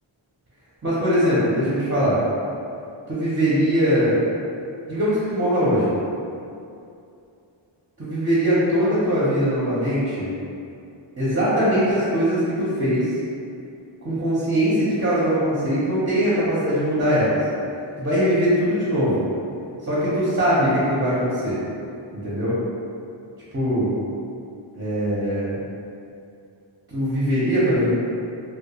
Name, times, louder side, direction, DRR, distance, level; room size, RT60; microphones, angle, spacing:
voice 1, 0.8-2.2 3.1-4.2 4.9-5.9 8.0-10.3 11.2-13.1 14.0-17.4 18.0-19.2 19.8-21.6 22.1-22.6 23.5-24.0 24.7-25.6 26.9-27.9, equal, 25° right, -10 dB, 0.5 m, -21 dB
2.2 x 2.1 x 2.8 m, 2.6 s
wide cardioid pair, 85°, 49 cm